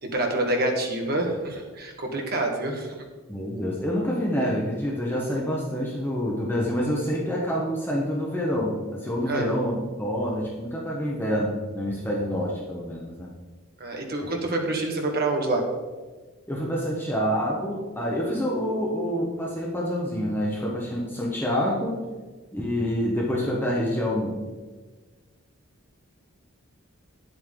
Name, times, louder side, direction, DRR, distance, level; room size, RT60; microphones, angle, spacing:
voice 1, 0.0-2.9 9.3-9.5 13.8-15.7, right 2 dB, 45° right, 2 dB, 1.4 m, -27 dB
voice 2, 3.3-13.3 16.5-22.0 22.5-24.3, equal, 10° left, -4 dB, 1.1 m, -27 dB
9.6 x 7.9 x 3.8 m, 1.3 s
head